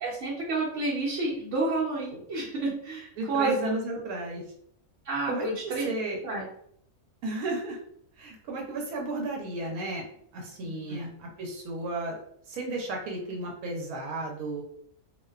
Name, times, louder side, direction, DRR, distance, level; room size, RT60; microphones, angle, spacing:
voice 1, 0.0-3.7 5.0-5.9 6.2-6.5 10.6-11.1, right 2 dB, 65° right, -7 dB, 0.9 m, -30 dB
voice 2, 3.2-4.4 5.3-6.2 7.2-7.8 8.2-10.0 10.3-12.2 12.5-14.6, right 2 dB, 85° right, 0 dB, 1.1 m, -33 dB
2.5 x 2.1 x 2.3 m, 0.68 s
omnidirectional pair, 1.5 m